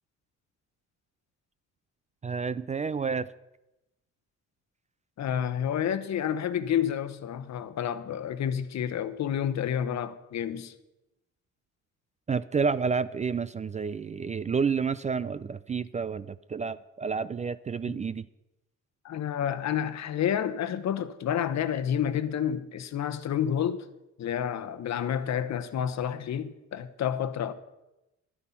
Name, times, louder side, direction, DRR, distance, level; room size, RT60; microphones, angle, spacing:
voice 1, 2.2-3.3 12.3-18.3, right 5 dB, 25° right, 0.4 m, -30 dB
voice 2, 5.2-10.7 17.8-18.0 19.0-23.9 24.2-27.5, left 9 dB, 65° left, 1.0 m, -29 dB
12.5 x 9.8 x 5.7 m
cardioid pair, 90°, 30 cm